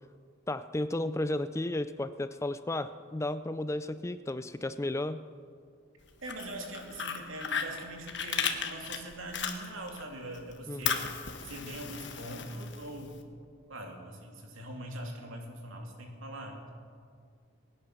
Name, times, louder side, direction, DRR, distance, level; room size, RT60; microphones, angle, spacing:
voice 1, 0.5-5.2 10.7-11.0, left 1 dB, 15° left, 12 dB, 0.3 m, -33 dB
Fire, 6.1-10.0 10.3-13.1, left 7 dB, 60° left, 1.3 m, -35 dB
voice 2, 6.2-11.1 11.4-13.3 13.7-16.7, right 1 dB, 85° right, 1 dB, 2.8 m, -42 dB
23.0 x 10.0 x 5.9 m, 2.1 s
head